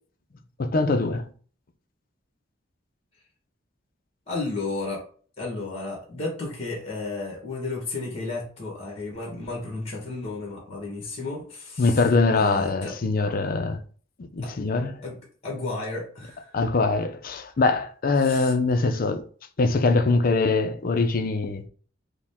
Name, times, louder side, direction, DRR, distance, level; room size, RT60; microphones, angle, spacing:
voice 1, 0.6-1.3 11.8-13.8 14.3-15.0 16.5-19.2 19.6-21.6, left 3 dB, 50° left, 0.5 m, -23 dB
voice 2, 4.3-5.0 5.4-12.0 12.3-12.9 14.4-14.5 15.0-15.2 15.4-16.6 18.2-18.5, left 3 dB, 35° left, 1.3 m, -33 dB
4.9 x 2.2 x 3.5 m
head